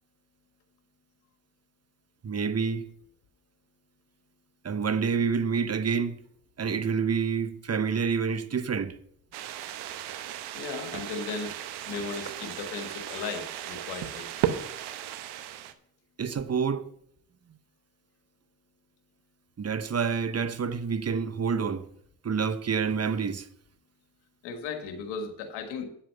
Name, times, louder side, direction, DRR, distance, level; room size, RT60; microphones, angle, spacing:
voice 1, 2.2-2.9 4.6-6.2 6.6-9.0 16.2-16.9 19.6-21.8 22.2-23.5, right 6 dB, 40° right, 1.0 m, -28 dB
sound 1, 9.3-15.7, right 11 dB, 80° right, 0.9 m, -35 dB
voice 2, 10.5-11.6 11.8-14.3 24.4-25.9, left 5 dB, 85° left, 1.6 m, -36 dB
9.9 x 7.6 x 5.5 m
hypercardioid pair, 45°, 39 cm